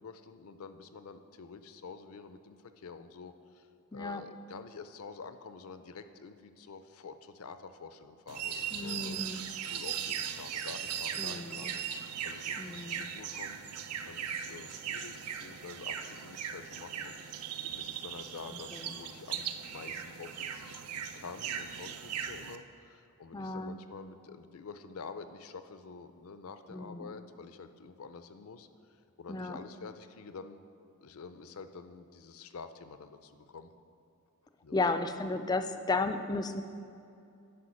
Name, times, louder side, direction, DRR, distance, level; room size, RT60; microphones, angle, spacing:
voice 1, 0.0-9.3 9.6-13.6 14.0-28.7 29.2-30.6 31.0-33.7 34.6-34.9, left 5 dB, 70° left, 10 dB, 0.5 m, -48 dB
voice 2, 3.9-4.2 8.7-9.5 11.2-11.7 12.6-13.0 18.7-18.8 23.3-23.8 26.7-27.1 29.3-29.6 34.7-36.6, left 3 dB, 15° left, 9 dB, 0.3 m, -34 dB
sound 1, 8.3-22.6, right 8 dB, 80° right, 0.5 m, -39 dB
10.0 x 5.1 x 6.4 m, 2.6 s
head